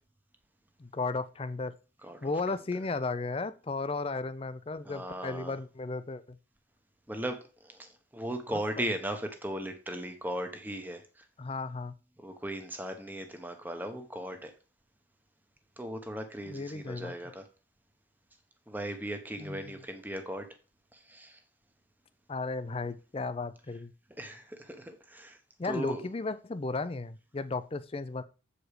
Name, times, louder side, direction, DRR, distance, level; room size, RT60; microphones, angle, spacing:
voice 1, 0.8-1.7 2.2-6.4 8.5-8.6 11.4-11.9 16.5-17.2 19.4-19.8 22.3-23.9 25.6-28.2, left 3 dB, 30° left, 14 dB, 0.4 m, -35 dB
voice 2, 2.0-2.3 2.7-2.8 4.8-5.6 7.1-7.4 7.6-11.2 12.2-14.5 15.8-17.5 18.7-20.5 20.9-21.4 24.2-25.4 25.6-26.1, right 1 dB, 10° right, 6 dB, 0.9 m, -37 dB
7.8 x 5.0 x 4.9 m, 0.35 s
head